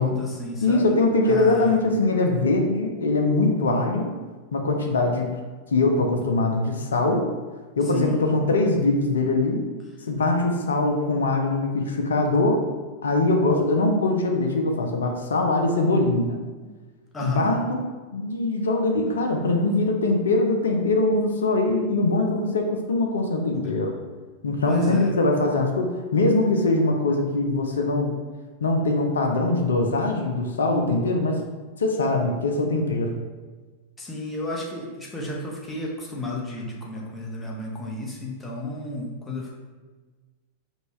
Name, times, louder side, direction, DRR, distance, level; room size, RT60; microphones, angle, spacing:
voice 1, 0.0-0.8 1.3-1.7 7.9-8.2 16.6-16.7 17.1-17.5 24.7-25.1 34.0-39.5, left 2 dB, 15° left, -3 dB, 0.9 m, -32 dB
voice 2, 0.6-4.1 4.5-5.3 5.7-7.2 7.8-9.6 10.1-12.6 13.0-16.4 17.2-17.8 18.1-24.0 24.4-28.1 28.6-31.4 31.8-33.1, left 2 dB, 70° left, 3 dB, 0.5 m, -22 dB
5.1 x 2.3 x 3.1 m, 1.3 s
figure-of-eight pair, 90°, 0 cm